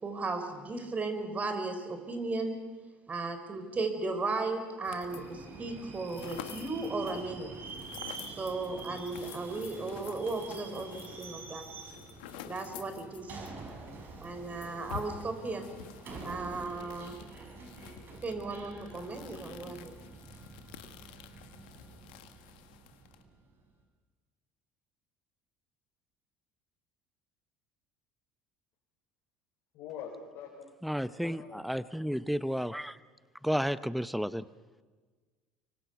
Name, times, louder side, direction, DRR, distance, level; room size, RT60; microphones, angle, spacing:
voice 1, 0.0-2.6 3.1-7.5 8.3-11.6 12.4-13.5 14.2-15.6 16.2-17.1 18.2-19.9, right 3 dB, 30° right, 4.2 m, -35 dB
sound 1, 4.8-5.4 5.7-13.6 13.8-13.9 14.2-23.2, left 11 dB, 80° left, 1.5 m, -49 dB
Subway metro underground, 5.1-23.5, right 3 dB, 45° right, 6.4 m, -47 dB
voice 2, 29.7-30.7 31.2-31.6, left 7 dB, 65° left, 4.4 m, -44 dB
voice 3, 30.8-33.0 33.4-34.4, equal, ahead, 0.8 m, -32 dB
25.0 x 24.0 x 5.9 m
hypercardioid pair, 70°, 5 cm